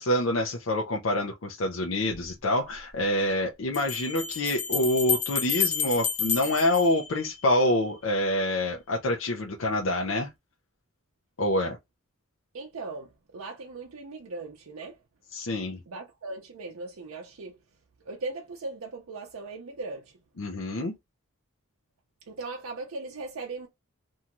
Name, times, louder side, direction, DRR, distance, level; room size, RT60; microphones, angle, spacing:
voice 1, 0.0-10.3 11.4-11.8 15.3-15.8 20.4-20.9, left 1 dB, 65° left, 0.5 m, -26 dB
sound 1, 2.1-2.2 3.7-7.7, left 7 dB, 30° left, 0.9 m, -30 dB
voice 2, 12.5-15.0 15.9-17.6 18.1-20.1 22.3-23.7, right 3 dB, 75° right, 0.6 m, -38 dB
2.7 x 2.3 x 2.9 m
head